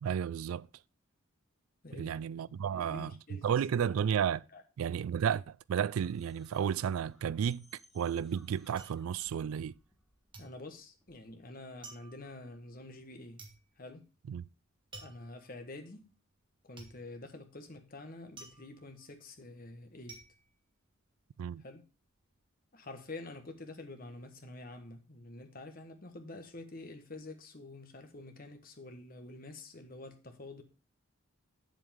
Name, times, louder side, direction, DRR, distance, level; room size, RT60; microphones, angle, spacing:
voice 1, 0.0-0.7 1.9-3.2 3.4-4.4 4.8-7.7 7.9-9.8 14.3-14.5 21.4-21.6, right 8 dB, 85° right, 0.3 m, -32 dB
voice 2, 2.5-3.4 4.5-4.6 10.4-13.4 13.8-14.0 15.0-16.0 16.7-20.2 21.6-21.8 22.7-30.6, left 2 dB, 40° left, 1.3 m, -47 dB
sound 1, 5.0-11.7, equal, ahead, 1.2 m, -65 dB
sound 2, 7.8-10.0 10.3-21.5 21.8-22.4, right 3 dB, 25° right, 1.4 m, -55 dB
8.1 x 7.5 x 3.5 m
head